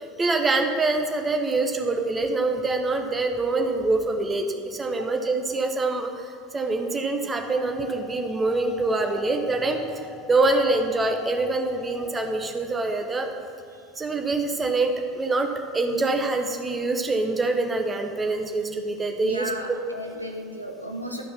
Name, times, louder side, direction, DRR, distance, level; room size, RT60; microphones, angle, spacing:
voice 1, 0.0-10.0 10.3-13.3 14.0-15.5 15.7-19.8, right 2 dB, 20° right, 4 dB, 1.1 m, -25 dB
sound 1, 7.4-12.5, left 4 dB, 45° left, 1.2 m, -43 dB
voice 2, 19.2-21.2, equal, 90° right, 2 dB, 1.0 m, -34 dB
12.0 x 5.8 x 5.8 m, 2.5 s
figure-of-eight pair, 75°, 0 cm